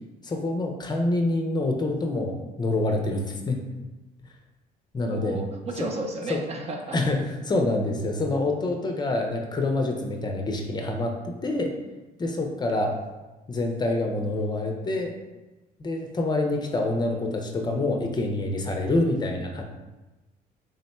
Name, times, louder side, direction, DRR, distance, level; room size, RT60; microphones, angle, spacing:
voice 1, 0.2-3.6 4.9-5.4 5.8-5.9 6.3-6.4 6.9-11.7 12.2-12.9 13.5-15.1 15.8-19.6, left 2 dB, 25° left, 2 dB, 0.5 m, -26 dB
voice 2, 5.1-7.0, right 2 dB, 40° right, 3 dB, 0.5 m, -33 dB
3.7 x 2.1 x 4.2 m, 1.1 s
cardioid pair, 110°, 17 cm